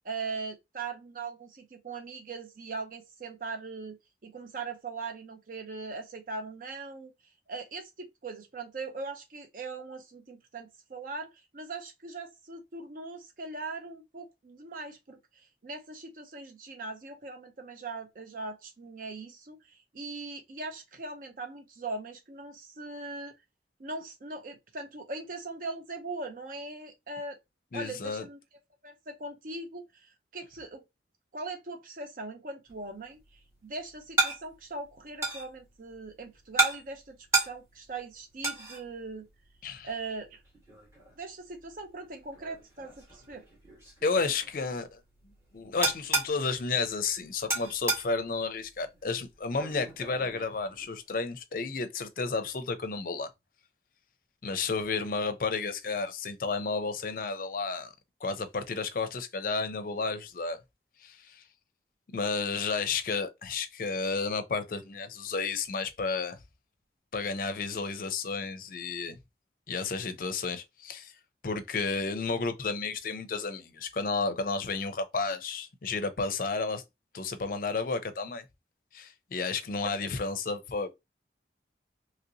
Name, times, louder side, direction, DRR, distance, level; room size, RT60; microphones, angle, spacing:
voice 1, 0.0-4.0 4.2-7.1 7.5-23.3 23.8-27.4 27.7-28.4 28.8-30.8 31.3-39.3 39.8-40.4 41.2-43.5, right 3 dB, 50° right, 0.5 m, -40 dB
voice 2, 27.7-28.2 39.6-39.9 44.0-45.0 45.5-53.3 54.4-57.9 58.2-60.6 61.0-61.4 62.1-66.4 67.1-69.2 69.7-71.1 71.4-76.8 77.1-78.4 78.9-80.9, left 4 dB, 50° left, 0.5 m, -32 dB
sound 1, 32.7-51.2, right 2 dB, 15° right, 1.2 m, -35 dB
3.0 x 2.8 x 2.6 m
head